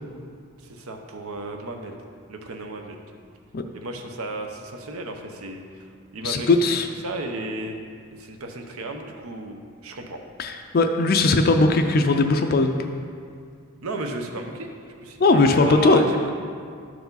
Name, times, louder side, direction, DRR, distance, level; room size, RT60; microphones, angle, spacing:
voice 1, 0.6-2.0 2.3-3.0 3.7-6.8 7.0-7.8 8.1-9.6 9.8-10.2 13.8-14.7 15.0-16.3, right 2 dB, 75° right, 4 dB, 0.8 m, -34 dB
voice 2, 6.2-6.9 10.4-12.8 15.2-16.0, left 3 dB, 40° left, 5 dB, 0.4 m, -19 dB
12.0 x 4.7 x 3.9 m, 2.2 s
head